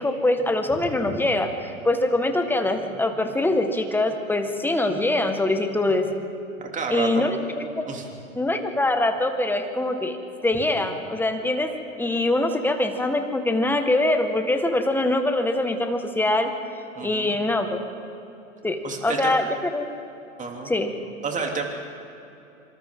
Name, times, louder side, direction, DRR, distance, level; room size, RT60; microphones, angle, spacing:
voice 1, 0.0-6.1 6.9-7.8 8.4-10.2 10.4-11.7 12.0-16.5 17.0-17.8 18.6-19.9 20.7-20.9, left 2 dB, 5° left, 6 dB, 1.7 m, -23 dB
voice 2, 6.6-7.3 7.9-8.0 16.9-17.4 18.8-19.3 20.4-20.7 21.2-21.6, right 4 dB, 20° right, 1 dB, 3.3 m, -30 dB
26.0 x 26.0 x 3.9 m, 2.8 s
hypercardioid pair, 105°, 40 cm